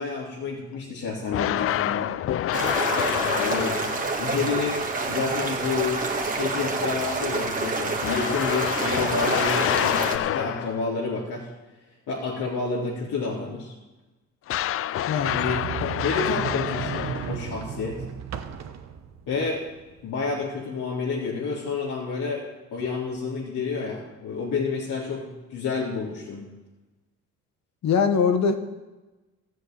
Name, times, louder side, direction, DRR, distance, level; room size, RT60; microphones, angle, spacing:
voice 1, 0.0-2.1 3.4-3.8 4.2-11.5 12.1-13.7 15.3-18.0 19.3-19.6 20.0-22.4 22.7-26.4, left 4 dB, 80° left, -8 dB, 3.9 m, -29 dB
sound 1, 1.3-4.3 8.0-10.9 14.5-17.6, left 12 dB, 50° left, 0.4 m, -27 dB
sound 2, 2.5-10.2, right 3 dB, 25° right, 2.0 m, -28 dB
Sliding door, 15.2-20.0, right 8 dB, 60° right, 1.2 m, -34 dB
voice 2, 27.8-28.6, left 6 dB, 65° left, 7 dB, 1.7 m, -21 dB
13.5 x 7.6 x 9.5 m, 1.1 s
cardioid pair, 105°, 30 cm